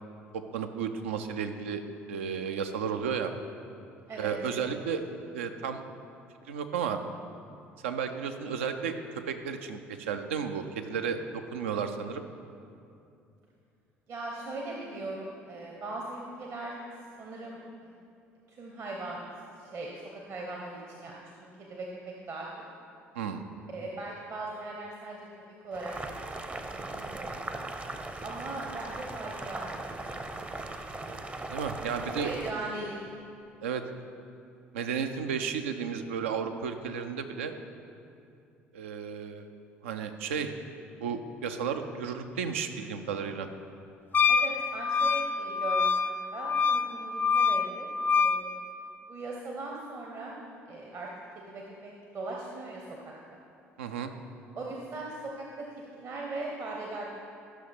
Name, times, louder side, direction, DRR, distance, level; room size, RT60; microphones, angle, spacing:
voice 1, 0.5-1.8 2.1-3.3 4.2-5.0 5.3-5.8 6.5-7.0 7.8-11.2 11.5-12.2 23.2-23.4 31.5-32.3 33.6-33.8 34.7-37.5 38.7-39.5 39.8-40.5 41.0-43.5 53.8-54.1, right 7 dB, 75° right, 7 dB, 0.5 m, -33 dB
voice 2, 14.1-16.8 17.2-17.9 18.5-19.2 19.6-21.9 22.3-22.7 23.7-25.3 25.6-26.1 26.4-27.4 28.2-30.2 32.1-33.0 44.3-48.7 49.1-50.4 50.7-51.1 51.3-53.4 54.5-57.1, right 2 dB, 45° right, -1 dB, 1.0 m, -39 dB
Boiling, 25.7-32.5, right 2 dB, 20° right, 0.6 m, -39 dB
Wind instrument woodwind instrument, 44.1-48.4, left 5 dB, 30° left, 0.4 m, -26 dB
12.5 x 6.2 x 3.5 m, 2.6 s
figure-of-eight pair, 55°, 7 cm